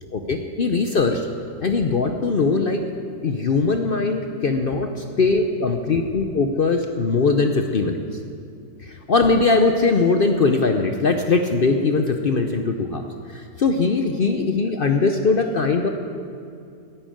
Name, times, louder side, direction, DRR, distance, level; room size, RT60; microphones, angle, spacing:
voice 1, 0.1-1.3 1.6-2.8 3.2-8.0 8.8-13.0 13.3-15.9, left 4 dB, 70° left, 5 dB, 0.5 m, -20 dB
10.5 x 8.9 x 9.1 m, 2.5 s
omnidirectional pair, 1.9 m